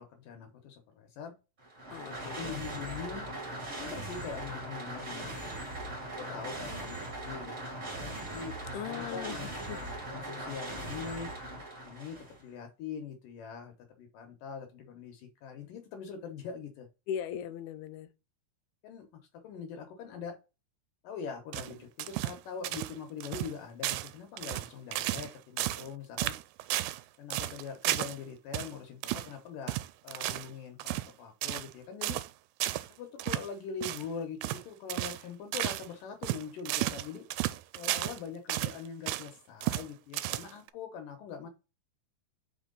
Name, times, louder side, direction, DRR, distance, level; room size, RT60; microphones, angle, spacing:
voice 1, 0.0-1.3 2.3-3.3 3.7-5.3 6.2-8.1 8.3-11.3 11.8-16.9 18.8-20.4 21.0-26.3 27.2-32.2 32.9-37.2 37.8-41.5, left 6 dB, 70° left, 2.5 m, -43 dB
sound 1, 1.6-12.4, right 1 dB, 25° right, 1.9 m, -40 dB
voice 2, 1.9-2.5 8.7-9.9 17.1-18.1, left 9 dB, 85° left, 2.6 m, -39 dB
sound 2, 21.5-22.4 22.6-23.0 23.2-23.5 23.8-24.1 24.4-25.3 25.6-25.9 26.2-27.0 27.3-28.2 28.5-28.7 29.0-29.3 29.7-30.5 30.8-31.1 31.4-31.7 32.0-32.3 32.6-32.9 33.2-33.5 33.8-34.1 34.4-34.6 34.9-35.2 35.5-35.9 36.2-38.2 38.5-39.3 39.6-39.9 40.1-40.7, right 16 dB, 85° right, 2.4 m, -33 dB
5.4 x 4.5 x 3.9 m
omnidirectional pair, 4.4 m